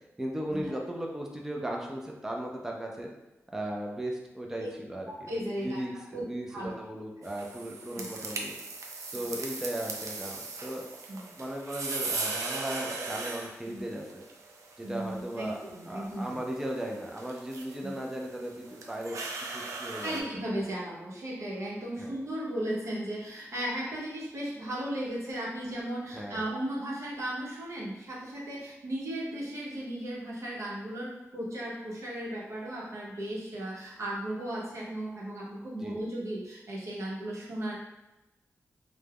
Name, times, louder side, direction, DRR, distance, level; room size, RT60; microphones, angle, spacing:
voice 1, 0.2-3.1 3.5-5.3 5.6-8.5 9.1-10.9 11.4-14.2 14.8-15.6 15.9-19.2 19.5-20.3 22.0-22.1 26.1-26.4 35.8-36.0, right 1 dB, 10° right, 0 dB, 0.3 m, -37 dB
voice 2, 5.1-5.8 6.1-6.7 7.9-8.1 9.1-9.2 11.1-11.4 13.7-13.8 14.8-16.4 17.8-17.9 20.0-37.8, right 1 dB, 65° right, -5 dB, 0.7 m, -36 dB
sound 1, 7.2-20.2, right 3 dB, 90° right, 0.3 m, -39 dB
2.2 x 2.0 x 3.3 m, 0.99 s
wide cardioid pair, 100°, 5 cm